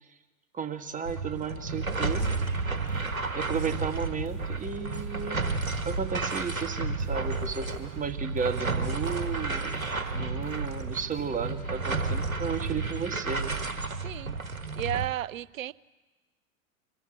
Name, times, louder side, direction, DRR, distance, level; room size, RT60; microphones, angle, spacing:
voice 1, 0.5-2.2 3.3-5.4 5.8-9.8 10.1-13.6, right 6 dB, 20° right, 1.6 m, -34 dB
sound 1, 1.1-15.1, right 3 dB, 90° right, 1.4 m, -32 dB
sound 2, 1.9-12.8, right 8 dB, 55° right, 1.7 m, -46 dB
voice 2, 14.0-14.3 14.8-15.7, right 12 dB, 75° right, 0.6 m, -33 dB
25.0 x 14.5 x 8.6 m
figure-of-eight pair, 85°, 41 cm